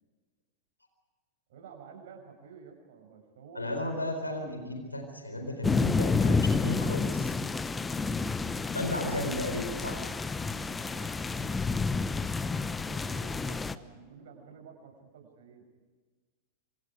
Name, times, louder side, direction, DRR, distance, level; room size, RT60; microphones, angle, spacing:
voice 1, 1.5-3.7 7.6-8.9 10.3-15.6, right 6 dB, 55° right, 3 dB, 6.6 m, -52 dB
voice 2, 3.5-7.3 8.7-10.0, left 1 dB, 85° left, 5 dB, 4.1 m, -34 dB
sound 1, 5.6-13.7, left 4 dB, 15° left, 0.9 m, -30 dB
27.0 x 26.5 x 4.9 m, 1.4 s
figure-of-eight pair, 90°, 0 cm